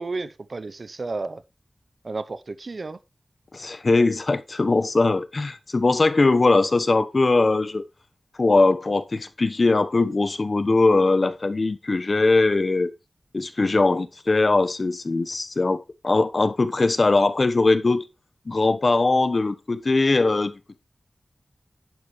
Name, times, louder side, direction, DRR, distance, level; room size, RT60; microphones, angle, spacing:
voice 1, 0.0-1.4 2.0-3.0, right 3 dB, 60° right, 0.8 m, -32 dB
voice 2, 3.5-7.8 8.4-12.9 13.3-18.1 18.5-20.8, left 3 dB, 55° left, 1.1 m, -21 dB
11.0 x 9.7 x 3.2 m
wide cardioid pair, 75°, 0 cm